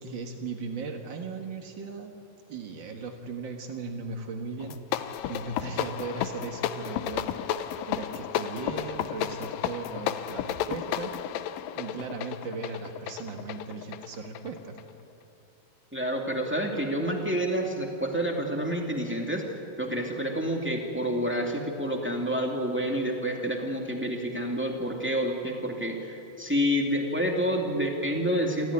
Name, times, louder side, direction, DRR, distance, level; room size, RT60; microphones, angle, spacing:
voice 1, 0.0-2.1 2.5-7.3 7.9-11.1 11.7-14.8, right 4 dB, 80° right, 3 dB, 1.0 m, -37 dB
sound 1, 4.6-14.9, left 10 dB, 80° left, 2.0 m, -33 dB
voice 2, 15.9-19.4 19.8-28.7, equal, 5° right, 1 dB, 0.9 m, -28 dB
27.5 x 15.0 x 9.9 m, 3.0 s
omnidirectional pair, 4.8 m